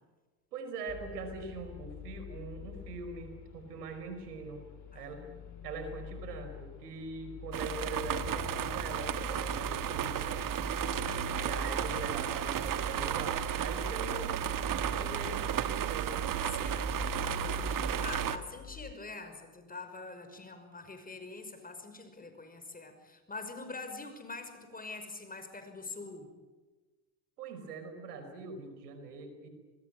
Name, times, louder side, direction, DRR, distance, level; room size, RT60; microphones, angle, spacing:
voice 1, 0.5-4.6 4.9-5.2 5.6-10.4 11.0-14.5 15.0-16.1 27.4-29.5, right 4 dB, 90° right, 7 dB, 5.0 m, -42 dB
sound 1, 0.9-18.9, left 11 dB, 40° left, 2.7 m, -45 dB
voice 2, 4.9-5.7 11.0-11.5 16.5-26.3, left 3 dB, 20° left, 8 dB, 5.8 m, -45 dB
sound 2, 7.5-18.4, right 10 dB, 45° right, 1.7 m, -33 dB
26.5 x 21.0 x 8.9 m, 1.3 s
hypercardioid pair, 70°, 45 cm